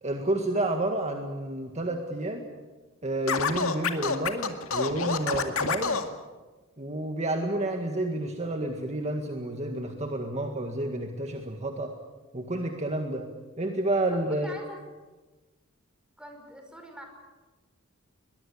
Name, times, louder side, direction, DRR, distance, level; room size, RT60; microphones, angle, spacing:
voice 1, 0.0-2.5 3.0-6.0 6.8-11.9 12.3-13.3 13.6-14.6, right 1 dB, 30° right, 3 dB, 1.8 m, -30 dB
Scratching (performance technique), 3.3-6.1, left 5 dB, 75° left, 2.1 m, -27 dB
voice 2, 14.1-14.8 16.2-17.0, equal, 5° right, 3 dB, 5.3 m, -44 dB
22.5 x 22.0 x 8.5 m, 1.3 s
head